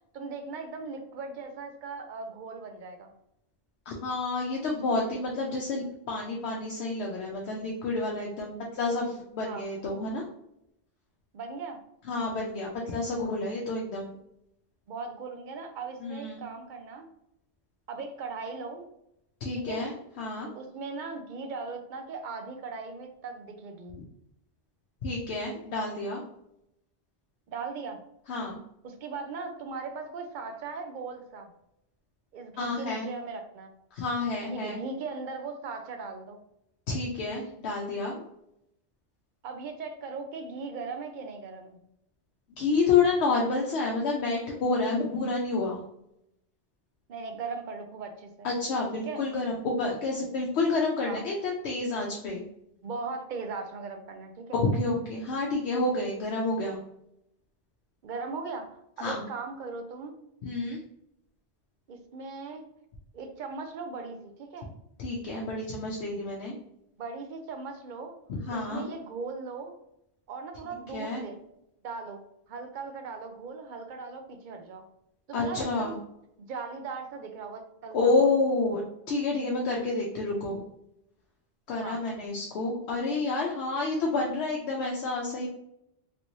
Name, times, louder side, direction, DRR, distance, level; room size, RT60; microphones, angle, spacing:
voice 1, 0.1-3.1 9.4-9.6 11.3-11.8 14.9-17.1 17.9-18.9 19.5-19.9 20.5-24.0 27.5-28.0 28.8-31.5 32.3-33.7 34.5-36.4 39.4-41.8 47.1-48.5 48.9-49.2 51.0-51.2 52.8-54.6 58.0-60.1 61.9-62.7 63.1-64.7 67.0-68.2 68.5-69.7 70.3-71.4 71.8-72.2 72.5-74.9 75.3-76.0 76.5-78.3 81.8-82.0, right 4 dB, 55° right, 6 dB, 0.6 m, -38 dB
voice 2, 3.9-10.3 12.1-14.1 16.0-16.4 19.4-19.9 20.2-20.5 25.0-26.2 28.3-28.6 32.6-33.1 33.9-34.8 36.9-38.2 42.6-45.8 48.4-52.4 54.5-56.8 59.0-59.2 60.4-60.8 65.0-66.6 68.3-68.8 70.9-71.2 75.3-75.9 77.9-80.6 81.7-85.5, left 3 dB, 75° left, -1 dB, 0.9 m, -29 dB
3.2 x 3.0 x 2.7 m, 0.80 s
omnidirectional pair, 1.1 m